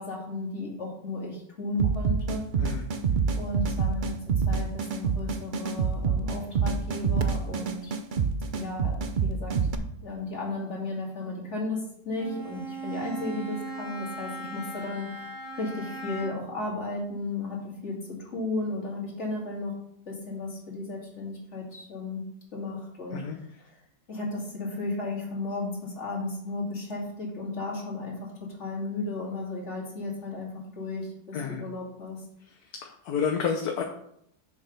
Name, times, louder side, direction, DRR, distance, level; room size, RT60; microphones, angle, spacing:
voice 1, 0.0-2.5 3.4-8.0 8.5-9.7 10.0-19.8 20.1-22.2 22.5-23.8 24.1-32.2, left 2 dB, 45° left, -3 dB, 2.6 m, -34 dB
sound 1, 1.8-9.7, right 5 dB, 70° right, 0.4 m, -27 dB
Bowed string instrument, 12.1-16.6, right 2 dB, 10° right, 1.8 m, -38 dB
voice 2, 32.8-33.8, left 6 dB, 70° left, 2 dB, 1.3 m, -29 dB
7.0 x 5.4 x 5.4 m, 0.73 s
omnidirectional pair, 1.7 m